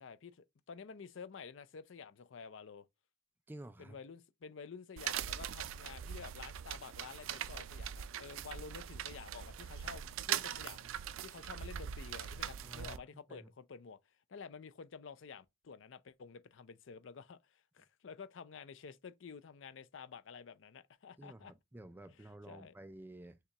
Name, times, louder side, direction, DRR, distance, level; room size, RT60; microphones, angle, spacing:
voice 1, 0.0-2.9 3.8-10.9 11.2-14.0 14.3-21.5 22.2-22.7, left 5 dB, 70° left, 0.5 m, -51 dB
voice 2, 3.5-4.0 12.6-13.5 21.2-23.4, right 1 dB, 10° right, 0.3 m, -52 dB
sound 1, 5.0-13.0, right 10 dB, 90° right, 0.4 m, -41 dB
6.6 x 2.3 x 2.9 m
head